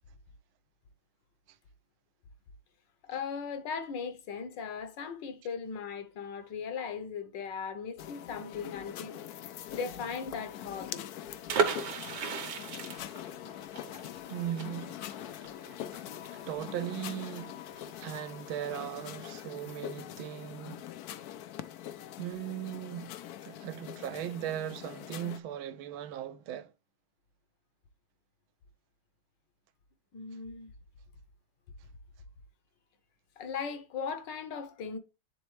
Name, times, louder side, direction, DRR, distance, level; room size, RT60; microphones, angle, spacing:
voice 1, 3.1-9.2 9.7-11.1 30.1-30.7 33.4-35.0, left 6 dB, 65° left, 1.4 m, -38 dB
sound 1, 8.0-25.4, left 11 dB, 85° left, 0.8 m, -43 dB
sound 2, 11.5-17.1 17.4-17.5 17.8-18.1, right 6 dB, 60° right, 1.5 m, -34 dB
voice 2, 14.3-15.0 16.3-17.5 18.0-20.8 22.2-26.7, right 11 dB, 80° right, 1.4 m, -38 dB
9.4 x 4.0 x 3.1 m
omnidirectional pair, 2.3 m